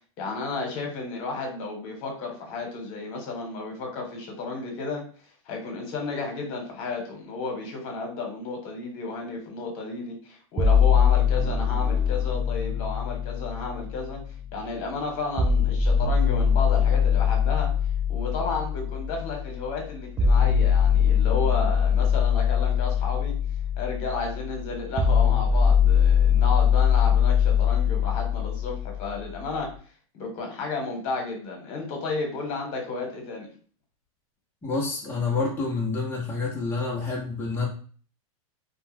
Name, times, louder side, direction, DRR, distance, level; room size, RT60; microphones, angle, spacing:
voice 1, 0.2-5.1 5.5-14.2 14.5-17.7 18.1-23.3 23.8-29.7 30.1-33.5, left 3 dB, 50° left, 2 dB, 1.2 m, -32 dB
sound 1, 10.6-14.6 15.4-29.4, left 7 dB, 15° right, 0.3 m, -22 dB
voice 2, 34.6-37.7, left 3 dB, 10° left, -4 dB, 0.8 m, -28 dB
2.3 x 2.2 x 3.3 m, 0.43 s
hypercardioid pair, 125°, 18 cm